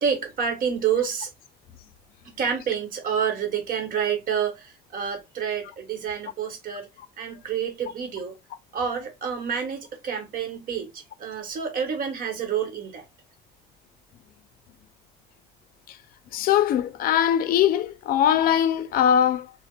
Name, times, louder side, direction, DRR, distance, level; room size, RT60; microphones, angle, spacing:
voice 1, 0.0-1.3 2.4-6.9 7.2-8.3 8.7-13.0, right 7 dB, 55° right, 1.0 m, -28 dB
voice 2, 16.3-19.5, left 9 dB, 60° left, 0.4 m, -21 dB
3.4 x 2.0 x 2.2 m
cardioid pair, 110°, 17 cm